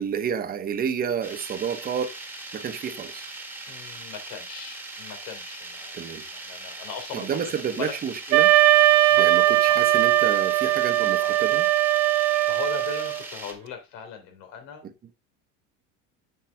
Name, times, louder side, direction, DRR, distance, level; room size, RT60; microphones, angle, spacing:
voice 1, 0.0-2.1 2.5-3.2 5.9-6.2 7.1-8.5 9.2-11.7 14.8-14.9, right 7 dB, 25° right, 1.0 m, -30 dB
sound 1, 1.2-13.5, right 2 dB, 5° right, 1.7 m, -40 dB
voice 2, 3.7-7.4 7.8-7.9 9.1-9.4 9.7-9.8 11.2-11.4 12.3-14.8, left 7 dB, 75° left, 3.5 m, -39 dB
Wind instrument woodwind instrument, 8.3-13.2, right 15 dB, 60° right, 0.8 m, -20 dB
7.6 x 7.4 x 3.4 m
cardioid pair, 145°, 33 cm